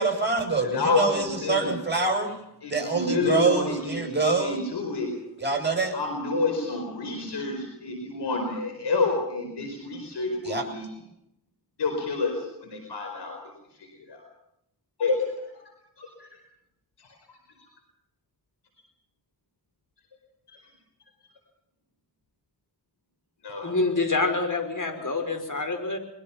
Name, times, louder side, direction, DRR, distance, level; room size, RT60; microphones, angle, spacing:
voice 1, 0.0-2.4 2.7-4.6 5.4-6.0 10.4-10.6, right 4 dB, 25° right, 3 dB, 7.8 m, -25 dB
voice 2, 0.6-1.7 2.6-5.1 5.9-10.8 11.8-13.4 14.1-14.2 15.0-15.2 16.0-16.3 17.0-17.1 20.5-20.6 23.4-23.7, left 3 dB, 90° left, 3 dB, 4.7 m, -28 dB
voice 3, 23.6-26.0, left 3 dB, 50° left, 7 dB, 5.5 m, -26 dB
24.0 x 22.0 x 5.8 m, 0.79 s
cardioid pair, 45°, 40 cm